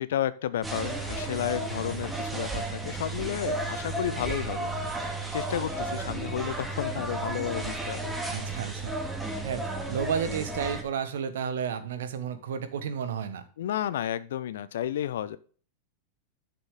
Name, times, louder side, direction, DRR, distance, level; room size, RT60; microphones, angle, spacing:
voice 1, 0.0-4.7 5.3-8.1 13.6-15.4, left 11 dB, 60° left, 17 dB, 0.7 m, -32 dB
sound 1, 0.6-10.8, right 2 dB, 5° right, 2.0 m, -33 dB
voice 2, 8.3-8.9 9.4-13.4, right 7 dB, 60° right, 11 dB, 1.4 m, -32 dB
11.0 x 6.8 x 3.8 m, 0.40 s
figure-of-eight pair, 90°, 0 cm